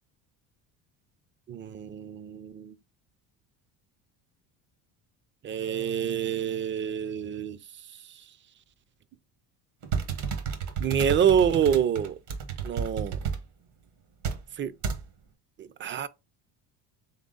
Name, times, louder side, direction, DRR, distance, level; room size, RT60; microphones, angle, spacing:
voice 1, 1.5-2.8 5.4-7.6 10.8-12.1 12.6-13.2 14.6-14.7 15.6-16.1, right 8 dB, 30° right, 0.4 m, -27 dB
sound 1, 9.8-13.4 14.2-14.4 14.8-15.0, right 6 dB, 70° right, 1.3 m, -31 dB
3.7 x 3.5 x 3.8 m
supercardioid pair, 85°, 43 cm